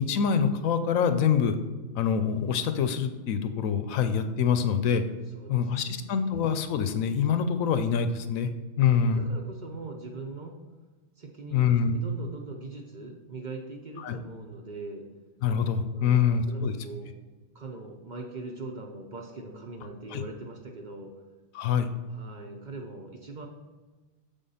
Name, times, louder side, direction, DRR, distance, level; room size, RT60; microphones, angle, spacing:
voice 1, 0.0-1.6 1.9-5.0 5.5-8.5 8.8-9.2 11.5-12.0 14.0-14.2 15.4-16.7 20.1-20.2 21.5-21.9, left 7 dB, 85° left, 9 dB, 1.0 m, -25 dB
voice 2, 5.3-6.2 8.8-10.6 11.2-15.1 15.9-17.1 17.5-21.1 22.1-23.5, right 3 dB, 45° right, 1 dB, 0.7 m, -41 dB
7.1 x 3.6 x 5.5 m, 1.3 s
omnidirectional pair, 1.4 m